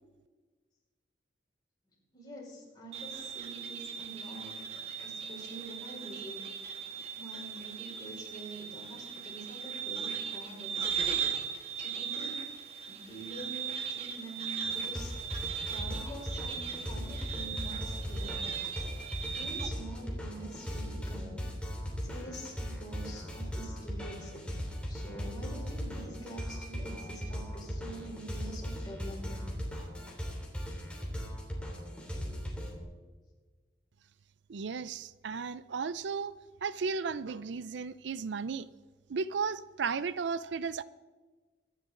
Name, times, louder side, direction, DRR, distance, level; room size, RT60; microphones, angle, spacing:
voice 1, 2.1-6.5 7.2-10.9 11.8-12.4 12.9-15.1 15.7-18.6 19.3-21.4 22.0-24.5 24.9-29.5, right 1 dB, 25° left, -4 dB, 5.4 m, -46 dB
sound 1, 2.9-19.7, right 7 dB, 35° right, 1.5 m, -38 dB
sound 2, 14.6-32.8, equal, 5° left, 3.0 m, -38 dB
voice 2, 34.5-36.3 36.6-38.7 39.1-40.8, right 5 dB, 75° right, 16 dB, 0.5 m, -34 dB
24.0 x 10.5 x 3.8 m, 1.3 s
head